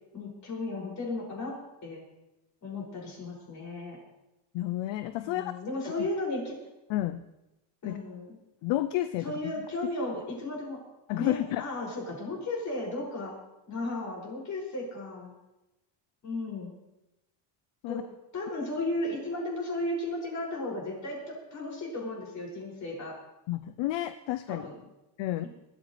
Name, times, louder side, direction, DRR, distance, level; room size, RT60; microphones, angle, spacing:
voice 1, 0.1-1.6 1.8-2.0 2.6-4.0 5.2-6.6 7.8-8.4 9.2-10.8 11.2-13.3 13.7-15.3 16.2-16.7 17.9-18.0 18.3-23.2 24.5-24.8 25.4-25.5, left 2 dB, 40° left, -3 dB, 6.3 m, -35 dB
voice 2, 4.5-5.5 6.0-6.1 6.9-7.2 7.8-8.0 8.6-9.5 11.1-11.6 17.8-18.0 23.5-24.6 25.2-25.5, left 14 dB, 70° left, 12 dB, 0.7 m, -31 dB
21.5 x 13.5 x 3.3 m, 0.97 s
cardioid pair, 145°, 46 cm